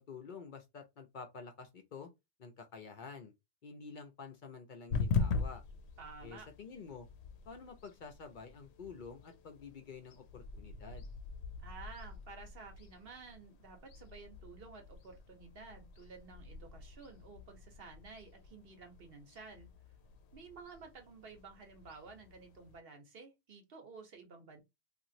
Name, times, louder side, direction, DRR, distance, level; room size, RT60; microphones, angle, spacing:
voice 1, 0.0-2.1 2.4-3.3 3.6-5.6 6.2-7.1 7.5-11.1, left 5 dB, 55° left, 0.7 m, -49 dB
sound 1, 4.9-22.8, left 5 dB, 85° left, 0.8 m, -43 dB
voice 2, 6.0-6.5 11.6-19.7 20.3-24.6, right 4 dB, 65° right, 1.1 m, -52 dB
2.9 x 2.5 x 2.7 m
omnidirectional pair, 1.1 m